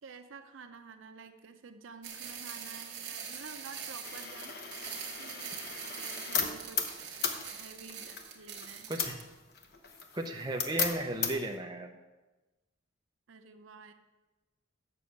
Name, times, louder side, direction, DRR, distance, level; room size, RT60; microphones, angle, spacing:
voice 1, 0.0-8.9 13.3-13.9, right 5 dB, 80° right, 8 dB, 0.7 m, -51 dB
sound 1, 2.0-9.2, right 7 dB, 55° right, 1.2 m, -43 dB
sound 2, 4.0-11.6, left 6 dB, 50° left, 0.9 m, -37 dB
voice 2, 10.1-11.9, right 1 dB, 20° right, 3 dB, 0.6 m, -35 dB
6.9 x 6.2 x 6.9 m, 1.1 s
head